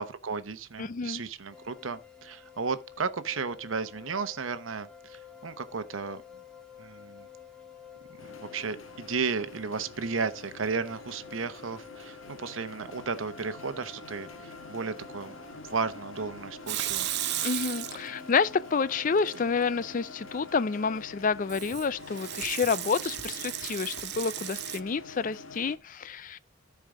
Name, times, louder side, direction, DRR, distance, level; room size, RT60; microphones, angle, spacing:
voice 1, 0.0-6.2 6.8-7.3 8.4-15.3 15.7-17.1, right 5 dB, 85° right, 0.9 m, -34 dB
voice 2, 0.8-1.2 17.4-26.4, left 5 dB, 40° left, 0.4 m, -29 dB
sound 1, 1.5-21.0, left 5 dB, 5° left, 1.1 m, -50 dB
sound 2, 8.2-25.8, left 3 dB, 90° left, 1.6 m, -47 dB
Water tap faucet / Sink (filling or washing) / Liquid, 16.7-18.4 18.7-19.5 21.5-24.8, right 13 dB, 55° right, 0.6 m, -35 dB
14.0 x 4.7 x 3.7 m
head